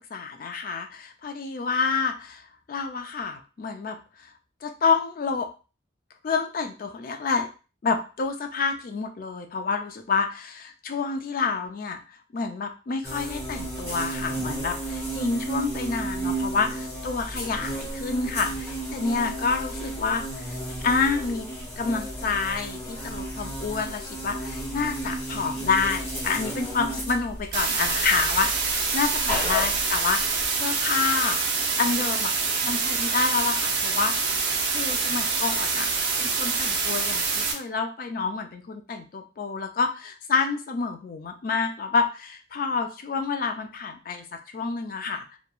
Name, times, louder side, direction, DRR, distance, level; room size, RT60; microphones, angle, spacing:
voice 1, 0.1-4.0 4.6-5.5 6.2-7.5 7.8-21.5 21.8-32.3 32.6-35.9 36.2-45.4, left 5 dB, 45° left, 6 dB, 0.3 m, -28 dB
sound 1, 13.0-30.5, right 1 dB, 10° left, 0.7 m, -33 dB
sound 2, 27.5-37.5, right 4 dB, 65° right, 0.5 m, -26 dB
2.9 x 2.2 x 2.3 m, 0.34 s
head